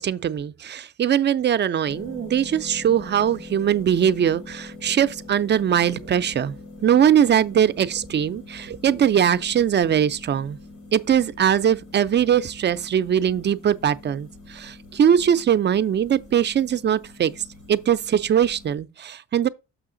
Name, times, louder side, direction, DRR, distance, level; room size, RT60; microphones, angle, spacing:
voice 1, 0.0-6.5 6.8-10.6 10.9-17.4 17.7-19.5, right 9 dB, 35° right, 0.4 m, -21 dB
sound 1, 1.9-18.8, left 2 dB, 80° left, 1.9 m, -43 dB
6.3 x 5.7 x 3.8 m
cardioid pair, 90°, 30 cm